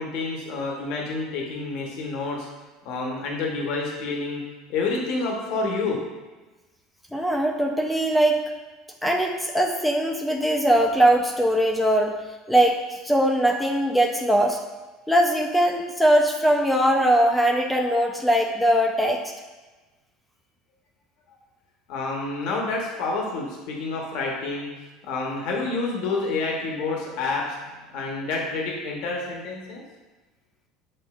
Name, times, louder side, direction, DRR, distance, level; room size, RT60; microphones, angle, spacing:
voice 1, 0.0-2.5 2.8-4.4 4.7-6.0 21.9-24.7 25.0-27.6 27.9-29.8, left 3 dB, 70° left, -1 dB, 0.8 m, -28 dB
voice 2, 7.1-8.4 9.0-12.2 12.5-14.6 15.1-19.2, right 1 dB, 5° left, 1 dB, 0.4 m, -21 dB
7.5 x 2.6 x 2.3 m, 1.2 s
supercardioid pair, 120°, 0 cm